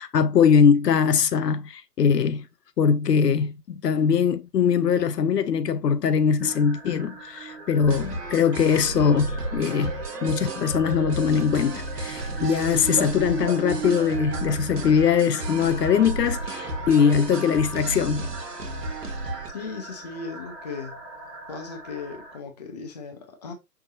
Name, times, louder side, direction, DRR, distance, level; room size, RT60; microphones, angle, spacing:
voice 1, 0.0-2.4 2.8-18.3, left 7 dB, 75° left, 0.6 m, -22 dB
sound 1, 6.4-22.4, right 3 dB, 15° right, 1.4 m, -37 dB
sound 2, 7.8-19.5, right 2 dB, 70° right, 1.2 m, -33 dB
voice 2, 19.5-21.0 21.5-23.5, left 4 dB, 25° left, 0.6 m, -37 dB
5.6 x 2.7 x 2.5 m
figure-of-eight pair, 135°, 49 cm